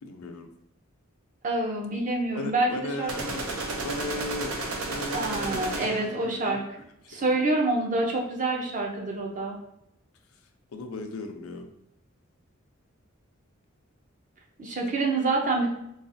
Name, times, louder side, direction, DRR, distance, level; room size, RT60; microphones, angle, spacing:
voice 1, 0.0-0.5 2.3-3.4 3.8-4.5 4.9-7.3 10.7-11.7, left 2 dB, 80° left, 5 dB, 0.5 m, -37 dB
voice 2, 1.4-3.1 5.1-6.6 7.1-9.6 14.6-15.7, right 2 dB, 35° right, -1 dB, 0.6 m, -27 dB
sound 1, 3.1-6.2, right 2 dB, 85° right, 0.5 m, -32 dB
3.9 x 2.3 x 2.6 m, 0.80 s
head